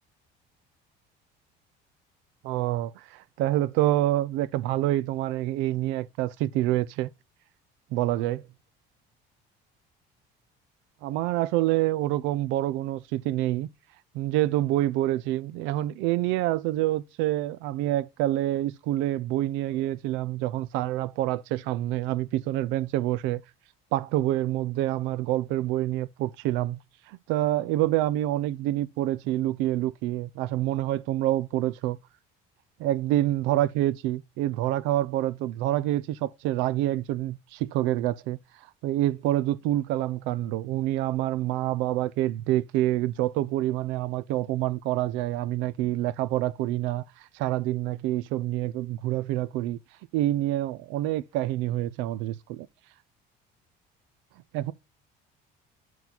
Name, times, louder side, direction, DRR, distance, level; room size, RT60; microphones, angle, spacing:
voice 1, 2.4-7.1 7.9-8.4 11.0-13.7 14.1-23.4 23.9-26.8 27.1-32.0 32.8-38.4 38.8-49.8 50.1-52.7 54.5-54.7, right 14 dB, 85° right, 0.5 m, -27 dB
7.1 x 4.0 x 5.8 m
cardioid pair, 145°, 19 cm